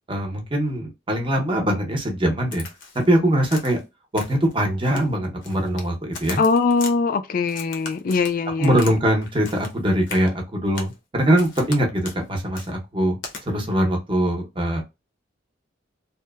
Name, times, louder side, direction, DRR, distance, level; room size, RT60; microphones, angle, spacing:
voice 1, 0.1-2.6 3.1-3.8 4.1-6.4 8.6-13.2 13.5-14.8, right 1 dB, 25° right, 0.7 m, -22 dB
Crack, 2.5-3.1 3.5-3.8 4.2-4.5 4.8-5.9 6.1-6.9 7.5-9.0 9.2-9.8 10.1-10.3 10.8-11.0 11.4-11.8 12.0-12.2 12.6-12.7 13.2-13.4, left 4 dB, 70° left, 0.7 m, -37 dB
voice 2, 6.4-8.8, left 4 dB, 45° left, 0.3 m, -21 dB
2.8 x 2.1 x 2.2 m
head